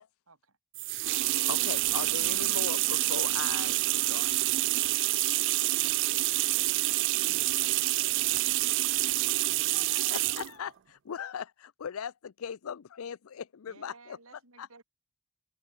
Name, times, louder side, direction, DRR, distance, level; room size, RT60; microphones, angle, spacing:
voice 1, 0.3-0.6 13.7-14.8, right 3 dB, 85° right, 6.9 m, -55 dB
sound 1, 0.7-10.5, right 19 dB, 60° right, 0.3 m, -27 dB
sound 2, 1.0-4.7, left 6 dB, 65° left, 6.5 m, -59 dB
voice 2, 1.5-3.8 4.1-4.3 9.6-14.2 14.6-14.8, left 7 dB, 85° left, 0.5 m, -39 dB
voice 3, 5.4-8.7, right 2 dB, 40° right, 7.4 m, -62 dB
head